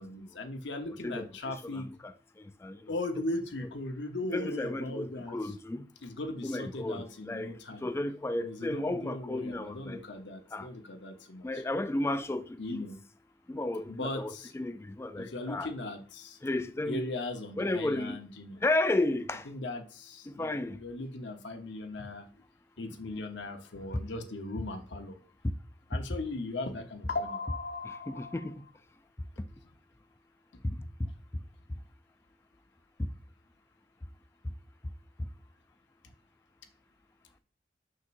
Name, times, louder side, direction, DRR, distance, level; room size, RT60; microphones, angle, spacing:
voice 1, 0.0-1.9 2.9-5.4 6.0-7.9 8.4-11.6 12.6-13.0 13.9-14.5 15.2-16.4 16.9-18.6 19.5-22.3 22.8-25.2 25.9-28.5, left 2 dB, 90° left, 1.0 m, -38 dB
voice 2, 1.0-2.1 2.4-2.9 4.3-5.9 6.4-7.5 7.8-10.0 10.5-10.7 11.4-12.9 13.5-15.7 16.4-17.1 17.6-18.2 18.6-19.5 20.3-20.8 27.8-28.6 30.6-31.1 33.0-33.1, left 2 dB, 15° left, 0.3 m, -33 dB
6.3 x 5.8 x 2.6 m
head